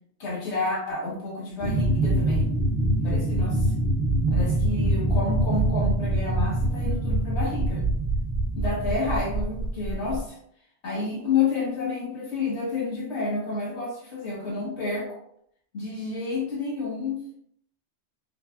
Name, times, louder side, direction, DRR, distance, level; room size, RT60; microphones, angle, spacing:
voice 1, 0.2-2.5 3.0-3.7 4.3-7.8 8.5-10.4 10.8-15.2 15.7-17.2, left 4 dB, 80° left, -4 dB, 1.5 m, -29 dB
sound 1, 1.6-10.2, right 1 dB, 50° right, 0.7 m, -24 dB
3.3 x 3.0 x 2.3 m, 0.68 s
omnidirectional pair, 1.2 m